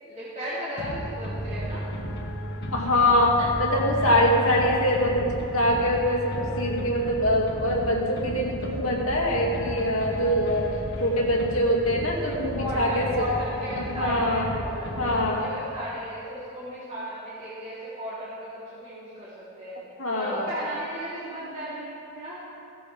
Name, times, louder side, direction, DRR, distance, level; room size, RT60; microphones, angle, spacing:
voice 1, 0.0-1.9 12.6-19.8 20.1-22.4, equal, 35° right, -12 dB, 3.5 m, -35 dB
sound 1, 0.8-15.8, equal, 45° left, 2.2 m, -34 dB
voice 2, 2.7-10.7 11.0-13.1 13.8-14.5 15.0-15.5 20.0-20.5, left 1 dB, 70° left, -2 dB, 2.4 m, -24 dB
16.5 x 15.5 x 3.6 m, 2.6 s
head